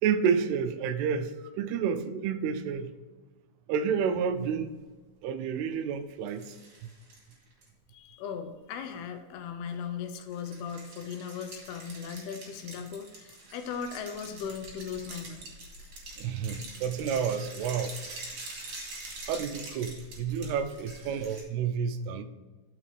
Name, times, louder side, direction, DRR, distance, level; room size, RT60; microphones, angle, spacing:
voice 1, 0.0-2.9 3.7-4.7 5.2-6.6 6.8-6.9 16.2-17.9 19.3-22.2, right 7 dB, 85° right, 10 dB, 2.6 m, -30 dB
sound 1, 6.3-7.7 10.3-21.4, right 2 dB, 40° right, 2.6 m, -45 dB
voice 2, 7.9-15.5, left 7 dB, 80° left, 7 dB, 2.8 m, -38 dB
12.5 x 6.1 x 3.3 m, 1.3 s
omnidirectional pair, 4.6 m